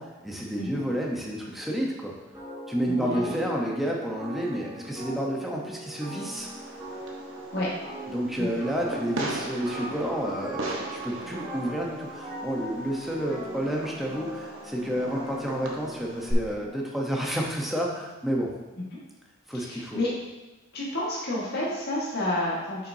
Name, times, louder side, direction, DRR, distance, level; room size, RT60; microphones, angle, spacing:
voice 1, 0.0-2.1 2.7-6.5 8.1-18.5 19.5-20.0, equal, ahead, -2 dB, 0.9 m, -30 dB
sound 1, 2.3-17.0, right 1 dB, 20° right, 1.8 m, -40 dB
voice 2, 2.9-3.3 7.5-7.7 8.4-8.6 19.5-20.1 20.7-22.9, left 1 dB, 50° left, -6 dB, 1.6 m, -30 dB
Fireworks, 6.3-16.3, right 2 dB, 60° right, 1.0 m, -39 dB
7.1 x 5.7 x 2.7 m, 1.1 s
head